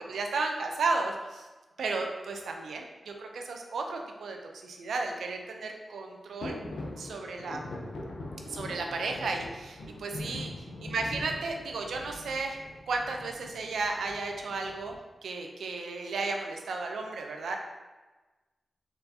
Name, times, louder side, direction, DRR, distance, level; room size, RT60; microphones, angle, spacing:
voice 1, 0.1-1.5 1.8-6.6 7.0-7.6 8.4-10.5 10.8-15.0 15.2-17.6, right 3 dB, 90° right, 3 dB, 0.5 m, -34 dB
sound 1, 6.4-15.0, left 2 dB, 80° left, 0.6 m, -42 dB
4.4 x 3.9 x 2.7 m, 1.2 s
cardioid pair, 45°, 0 cm